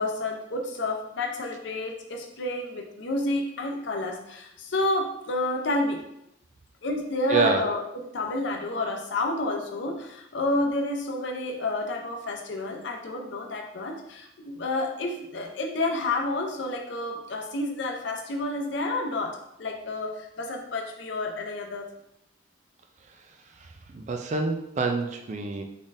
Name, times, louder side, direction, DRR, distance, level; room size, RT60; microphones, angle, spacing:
voice 1, 0.0-6.0 6.8-21.9, left 2 dB, 65° left, 2 dB, 0.6 m, -30 dB
voice 2, 7.3-7.6 23.6-25.6, right 4 dB, 35° right, 5 dB, 0.3 m, -27 dB
3.9 x 3.6 x 2.5 m, 0.81 s
head